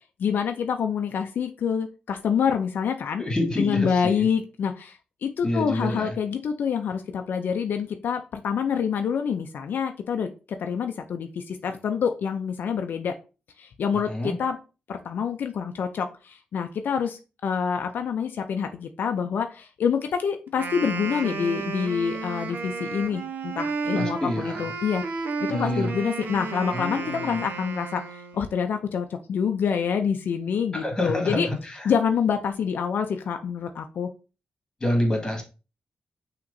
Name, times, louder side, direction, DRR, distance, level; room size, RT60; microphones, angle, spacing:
voice 1, 0.2-3.2 3.6-13.1 13.6-14.6 14.9-25.0 25.4-31.5 31.8-34.1, left 7 dB, 75° left, 5 dB, 0.4 m, -27 dB
voice 2, 3.2-4.3 5.4-6.1 14.1-14.4 23.9-24.7 25.5-25.9 26.7-27.4 30.7-31.9 34.8-35.4, left 1 dB, 20° left, 1 dB, 1.7 m, -27 dB
Wind instrument woodwind instrument, 20.5-28.5, right 4 dB, 70° right, 0.7 m, -32 dB
5.9 x 2.9 x 2.6 m, 0.32 s
cardioid pair, 100°, 3 cm